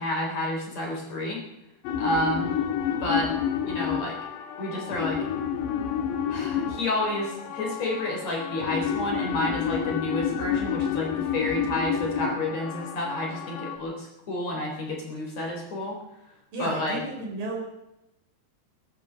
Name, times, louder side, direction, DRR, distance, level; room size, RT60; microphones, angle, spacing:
voice 1, 0.0-1.4 2.0-2.5 3.0-3.3 3.7-4.2 4.6-5.2 6.3-16.0 16.6-17.0, left 1 dB, 40° left, 0 dB, 4.7 m, -30 dB
sound 1, 1.8-13.8, left 8 dB, 85° left, 3.4 m, -29 dB
voice 2, 16.5-17.6, right 2 dB, 55° right, 1 dB, 5.3 m, -32 dB
22.0 x 13.0 x 5.1 m, 0.90 s
omnidirectional pair, 4.8 m